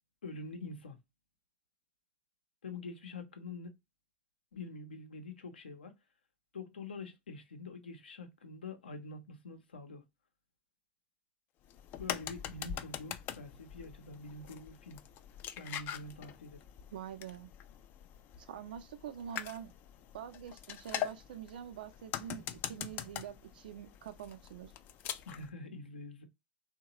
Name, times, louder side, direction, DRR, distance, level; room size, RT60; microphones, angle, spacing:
voice 1, 0.2-1.0 2.6-3.7 4.5-6.0 6.5-10.0 12.0-15.0 15.6-16.6 25.3-26.3, left 3 dB, 80° left, 0.7 m, -46 dB
sound 1, 11.6-25.5, left 10 dB, 40° left, 0.3 m, -43 dB
voice 2, 16.9-17.5 18.4-19.7 20.1-24.7, right 9 dB, 70° right, 0.5 m, -45 dB
3.0 x 2.2 x 2.7 m
hypercardioid pair, 90°, 5 cm